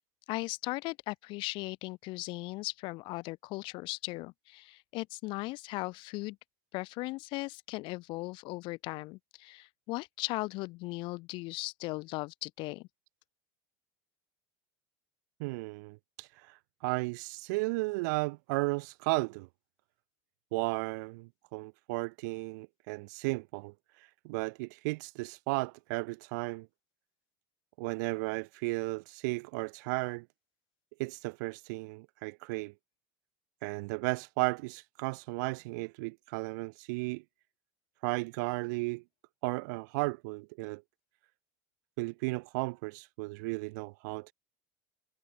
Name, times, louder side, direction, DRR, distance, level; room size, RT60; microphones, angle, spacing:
voice 1, 0.3-6.4 6.7-12.9, left 22 dB, 60° left, 0.5 m, -38 dB
voice 2, 15.4-19.5 20.5-26.7 27.8-30.3 31.0-32.7 33.6-37.2 38.0-39.0 39.4-40.8 42.0-44.3, right 26 dB, 75° right, 0.6 m, -34 dB
supercardioid pair, 105°, 10 cm